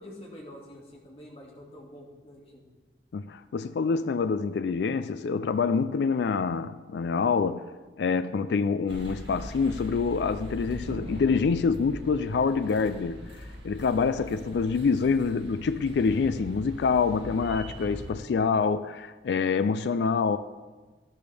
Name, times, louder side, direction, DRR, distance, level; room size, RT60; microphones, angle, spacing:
voice 1, 0.0-2.6, left 1 dB, 35° left, 2.1 m, -46 dB
voice 2, 3.1-7.6 8.0-13.3 13.6-20.4, left 5 dB, 75° left, 0.4 m, -26 dB
sound 1, 8.9-18.1, equal, 90° right, 2.2 m, -41 dB
12.0 x 12.0 x 3.4 m
head